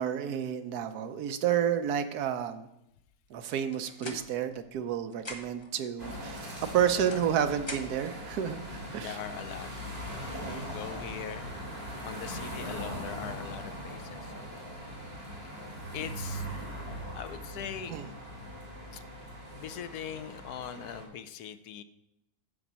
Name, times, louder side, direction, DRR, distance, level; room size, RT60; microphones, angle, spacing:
voice 1, 0.0-2.7 3.3-9.2 10.4-10.7 17.9-18.1, right 9 dB, 75° right, 9 dB, 1.2 m, -30 dB
sound 1, 3.5-4.9 5.1-5.7 6.5-8.2, left 1 dB, 25° left, 0.7 m, -44 dB
sound 2, 6.0-21.0, equal, 40° right, 3.3 m, -40 dB
voice 2, 6.9-7.2 9.0-9.7 10.1-11.5 12.0-14.6 15.9-16.5 17.2-17.9 18.9-19.0 19.6-21.8, left 9 dB, 75° left, 11 dB, 1.1 m, -41 dB
10.0 x 4.0 x 7.4 m, 0.84 s
omnidirectional pair, 1.7 m